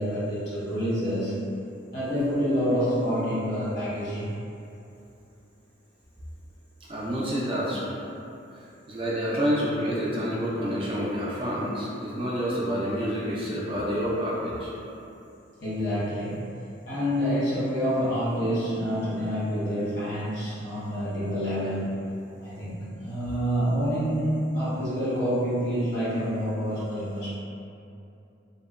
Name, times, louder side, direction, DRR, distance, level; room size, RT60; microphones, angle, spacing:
voice 1, 0.0-1.4 1.9-4.3 15.6-16.4 16.9-21.9 22.4-27.4, equal, 70° left, -11 dB, 1.1 m, -27 dB
voice 2, 6.9-7.9 8.9-14.7, equal, 30° right, -6 dB, 0.3 m, -28 dB
2.8 x 2.1 x 2.3 m, 2.7 s
head